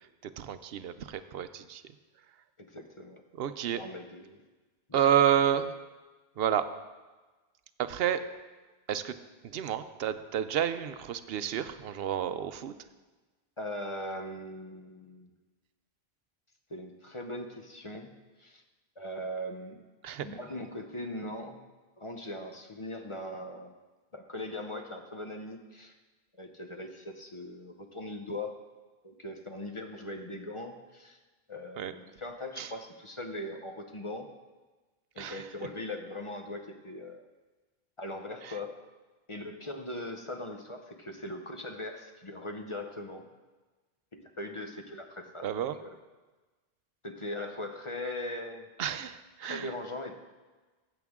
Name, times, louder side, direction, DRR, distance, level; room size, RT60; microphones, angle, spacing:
voice 1, 0.2-1.8 3.4-3.8 4.9-5.7 6.4-6.7 7.8-8.2 8.9-9.1 9.5-12.7 20.0-20.3 31.8-31.9 32.6-32.7 35.2-35.4 38.4-38.5 45.4-45.8 48.8-49.7, right 9 dB, 70° right, 11 dB, 0.8 m, -30 dB
voice 2, 2.6-3.2 3.7-4.4 4.9-5.1 13.6-15.3 16.7-18.1 18.4-18.6 19.0-19.8 20.2-21.6 22.0-23.7 24.1-25.9 26.4-28.6 29.0-31.2 31.5-34.3 35.1-37.2 38.0-38.8 39.3-43.3 44.1-45.5 45.8-45.9 47.0-48.7 49.4-50.1, left 1 dB, 35° left, 4 dB, 0.7 m, -40 dB
14.5 x 8.1 x 3.6 m, 1.3 s
omnidirectional pair, 1.1 m